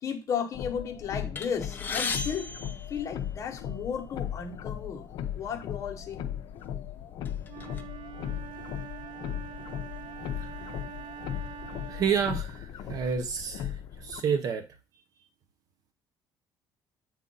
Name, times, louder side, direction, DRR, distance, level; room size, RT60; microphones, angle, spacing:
voice 1, 0.0-2.5 2.9-6.2, left 7 dB, 40° left, 1.1 m, -34 dB
Windshield Wiper In Car, 0.5-14.2, left 10 dB, 70° left, 0.5 m, -37 dB
sound 1, 1.3-3.7 4.5-4.6 5.0-5.1 6.0-6.2 6.6-7.8, left 4 dB, 25° left, 0.6 m, -36 dB
Wind instrument woodwind instrument, 7.5-12.3, right 10 dB, 85° right, 0.5 m, -44 dB
voice 2, 11.9-14.6, right 6 dB, 50° right, 0.7 m, -29 dB
7.3 x 2.5 x 5.4 m
cardioid pair, 150°, 8 cm